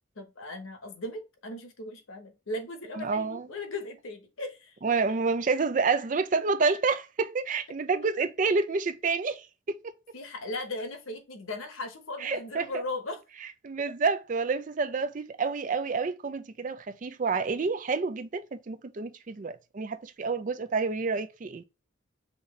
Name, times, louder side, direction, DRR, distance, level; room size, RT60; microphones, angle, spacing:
voice 1, 0.2-4.8 5.1-5.2 8.0-8.2 10.1-13.2, left 2 dB, 85° left, 1.0 m, -38 dB
voice 2, 3.0-3.4 4.8-9.8 12.2-12.7 13.6-21.6, right 4 dB, 40° right, 0.4 m, -28 dB
5.6 x 2.7 x 3.2 m
head